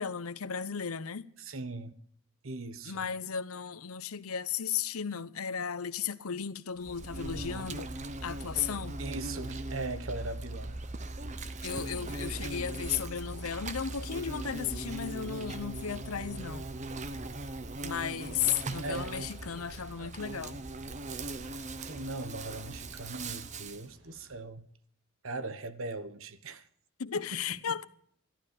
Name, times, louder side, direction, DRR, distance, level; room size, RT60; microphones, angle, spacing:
voice 1, 0.0-1.3 2.9-7.9 8.2-9.0 11.6-16.7 17.8-20.6 27.0-27.8, left 7 dB, 80° left, 0.8 m, -35 dB
voice 2, 1.4-2.0 2.4-3.1 9.0-10.8 18.8-19.3 20.0-20.1 21.8-24.7 25.2-26.7 27.3-27.4 27.7-27.8, right 2 dB, 70° right, 1.2 m, -39 dB
Insect, 6.8-23.9, right 2 dB, 35° right, 0.8 m, -39 dB
Thunder / Rain, 11.5-24.4, right 1 dB, 90° right, 7.3 m, -58 dB
14.0 x 12.0 x 6.7 m
head